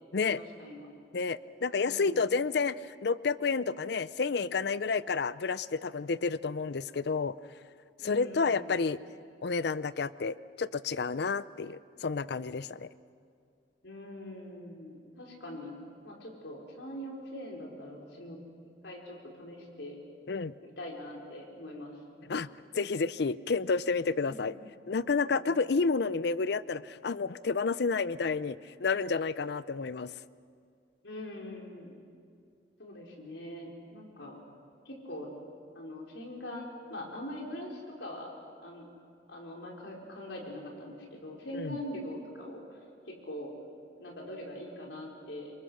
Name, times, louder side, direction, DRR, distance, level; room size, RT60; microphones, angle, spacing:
voice 1, 0.1-0.8 1.7-2.2 8.0-8.8 13.8-15.7 16.0-18.4 18.8-20.0 20.6-22.0 24.3-24.5 25.2-25.5 31.0-31.9 32.8-34.3 34.8-35.3 35.7-36.6 36.9-38.3 38.6-38.9 39.3-42.6 43.1-43.5 44.0-45.5, left 1 dB, 85° left, -1 dB, 4.6 m, -43 dB
voice 2, 1.1-7.3 8.0-9.0 9.4-12.9 20.3-20.5 22.3-22.5 22.7-24.5 24.9-30.1 41.6-41.8, left 4 dB, 65° left, 17 dB, 0.6 m, -30 dB
27.0 x 23.5 x 6.4 m, 2.3 s
head